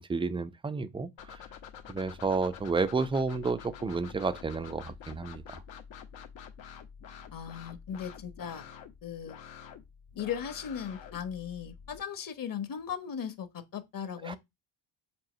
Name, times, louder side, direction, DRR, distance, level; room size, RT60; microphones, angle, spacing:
voice 1, 0.0-1.4 1.9-5.6 14.2-14.4, right 4 dB, 10° right, 0.4 m, -31 dB
sound 1, 1.2-12.0, left 8 dB, 75° left, 1.5 m, -48 dB
voice 2, 7.3-8.6 9.0-9.4 10.2-14.4, left 8 dB, 45° left, 1.3 m, -37 dB
7.6 x 3.0 x 6.1 m
cardioid pair, 145°, 45 cm